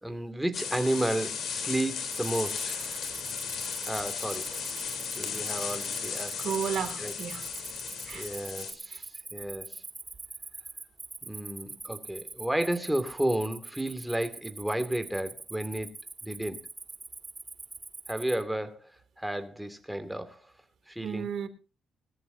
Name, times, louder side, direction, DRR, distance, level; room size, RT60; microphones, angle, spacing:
voice 1, 0.0-2.8 3.9-4.6 5.1-6.5 7.0-7.1 8.1-9.8 11.2-15.9 16.2-16.6 18.1-20.5 20.9-21.3, right 1 dB, 5° right, 2.5 m, -32 dB
sound 1, 0.5-8.7, left 6 dB, 65° left, 3.6 m, -35 dB
Cricket, 2.1-18.4, right 3 dB, 25° right, 1.9 m, -43 dB
voice 2, 6.4-7.4 8.0-8.3 8.9-9.0 21.0-21.5, right 8 dB, 65° right, 2.8 m, -33 dB
21.5 x 14.0 x 2.7 m
cardioid pair, 90°, 0 cm